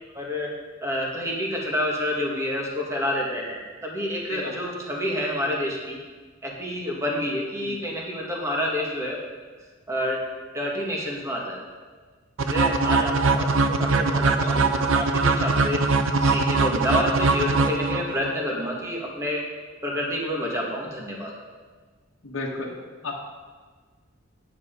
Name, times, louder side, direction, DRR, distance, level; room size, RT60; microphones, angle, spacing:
voice 1, 0.1-0.5 0.8-6.0 6.4-9.2 9.9-10.2 10.5-11.6 12.4-13.5 13.8-15.8 16.2-19.4 19.8-21.3, left 1 dB, 15° right, -2 dB, 1.9 m, -28 dB
voice 2, 4.3-4.7 7.6-7.8 14.5-14.7 22.2-22.8 23.0-23.2, left 2 dB, 80° left, -2 dB, 1.1 m, -34 dB
sound 1, 12.4-18.3, right 3 dB, 70° right, 0.6 m, -22 dB
9.6 x 6.8 x 5.3 m, 1.5 s
head